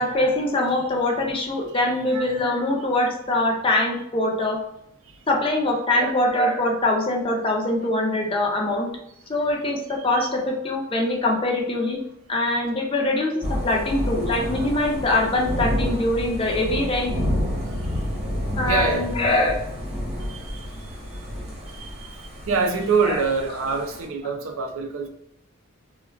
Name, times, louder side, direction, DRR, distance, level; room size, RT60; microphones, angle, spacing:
voice 1, 0.0-4.6 5.3-8.9 9.3-12.0 12.3-17.2 18.6-19.6 23.1-23.2, left 1 dB, 25° left, 0 dB, 0.5 m, -23 dB
Thunder / Rain, 13.4-24.0, equal, 30° right, 0.9 m, -29 dB
voice 2, 18.6-19.1 20.3-20.4 21.8-22.2 22.5-25.1, right 4 dB, 70° right, 5 dB, 0.5 m, -25 dB
3.4 x 2.2 x 2.3 m, 0.75 s
head